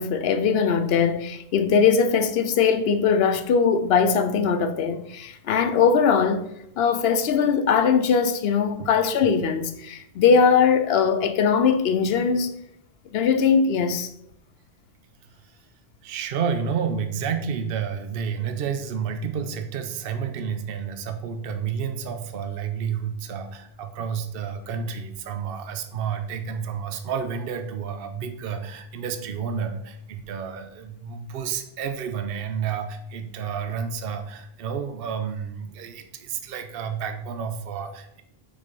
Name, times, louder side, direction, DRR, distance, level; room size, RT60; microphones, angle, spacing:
voice 1, 0.0-6.5 6.8-12.5 13.1-14.1, left 6 dB, 80° left, 0.8 m, -21 dB
voice 2, 16.0-38.2, right 7 dB, 70° right, 0.8 m, -30 dB
6.2 x 3.9 x 5.2 m
omnidirectional pair, 1.0 m